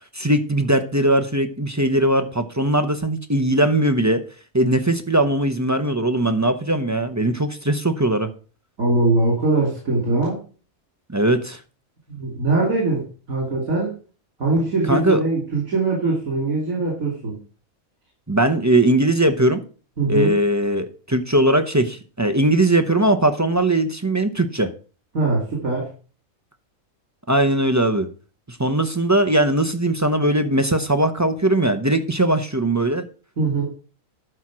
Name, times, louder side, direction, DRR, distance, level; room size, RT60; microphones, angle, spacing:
voice 1, 0.1-4.2 4.5-8.3 11.1-11.6 14.8-15.2 18.3-19.6 20.1-24.7 27.3-28.1 28.5-33.1, right 1 dB, 15° right, 8 dB, 0.6 m, -20 dB
voice 2, 8.8-10.4 12.1-14.0 14.4-17.4 20.0-20.4 25.1-25.9 33.4-33.7, right 3 dB, 70° right, -3 dB, 3.5 m, -22 dB
12.0 x 4.5 x 6.2 m, 0.37 s
omnidirectional pair, 1.5 m